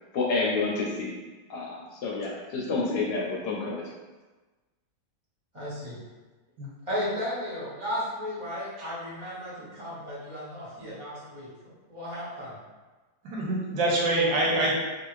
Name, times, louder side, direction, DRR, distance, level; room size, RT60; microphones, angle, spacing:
voice 1, 0.1-1.1 1.5-3.8, left 3 dB, 75° left, -3 dB, 1.1 m, -29 dB
voice 2, 5.5-6.0 6.9-11.5 11.9-12.6, equal, 20° right, -11 dB, 1.0 m, -34 dB
voice 3, 13.2-14.8, right 2 dB, 90° right, -3 dB, 1.4 m, -25 dB
3.0 x 2.5 x 3.0 m, 1.2 s
omnidirectional pair, 2.0 m